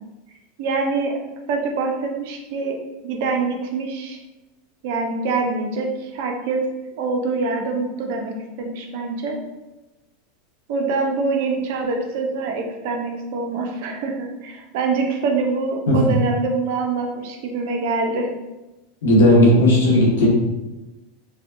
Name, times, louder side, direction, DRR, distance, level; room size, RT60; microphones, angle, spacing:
voice 1, 0.6-2.8 3.0-4.2 4.8-6.7 7.0-9.4 10.7-18.3, right 4 dB, 65° right, 2 dB, 0.5 m, -25 dB
voice 2, 19.0-20.3, left 1 dB, 80° left, -4 dB, 1.0 m, -14 dB
3.3 x 2.1 x 2.5 m, 1.1 s
hypercardioid pair, 95°, 0 cm